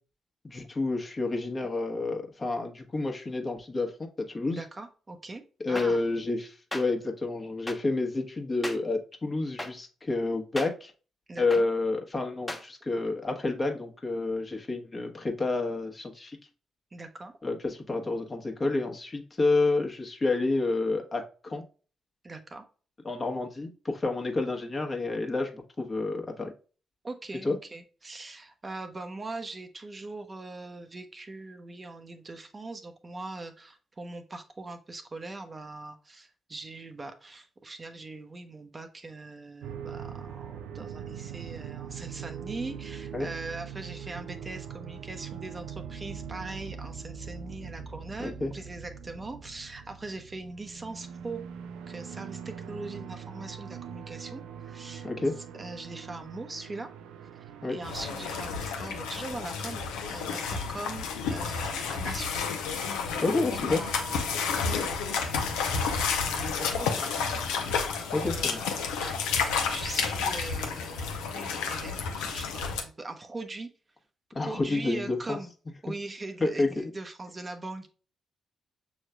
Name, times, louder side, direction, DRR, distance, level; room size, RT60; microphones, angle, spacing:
voice 1, 0.4-4.6 5.6-10.9 11.4-16.4 17.4-21.6 23.0-26.5 27.4-27.6 43.1-43.3 48.2-48.5 55.0-55.3 57.6-57.7 63.2-63.8 68.1-68.6 74.3-75.4 75.9-76.0 76.4-76.7, left 3 dB, 35° left, 2 dB, 1.1 m, -29 dB
voice 2, 4.5-5.4 5.7-6.0 11.3-11.6 16.9-17.3 22.2-22.6 27.0-51.4 51.9-55.1 55.6-56.9 57.7-62.4 62.9-73.7 74.4-75.5 75.8-77.9, right 2 dB, 35° right, 7 dB, 0.7 m, -41 dB
sound 1, 5.8-5.9 6.7-6.8 7.7-7.8 8.6-8.8 9.6-9.7 10.6-10.7 11.5-11.6 12.5-12.6, left 1 dB, 20° left, 1.0 m, -34 dB
sound 2, 39.6-58.4, right 7 dB, 80° right, 0.3 m, -42 dB
sound 3, 57.8-72.8, left 5 dB, 80° left, 0.6 m, -31 dB
6.4 x 3.1 x 2.2 m, 0.37 s
hypercardioid pair, 45°, 0 cm